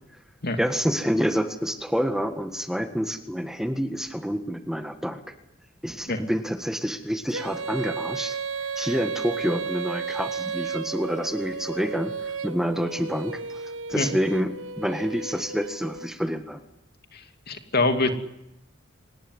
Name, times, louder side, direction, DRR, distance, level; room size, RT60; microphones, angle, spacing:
voice 1, 0.6-5.2 5.8-8.4 8.8-16.6, equal, ahead, 8 dB, 1.6 m, -28 dB
Female singing, 7.3-16.1, right 5 dB, 90° right, 1.5 m, -33 dB
voice 2, 17.1-18.1, left 2 dB, 50° left, 8 dB, 2.7 m, -25 dB
25.5 x 19.5 x 9.6 m, 0.88 s
head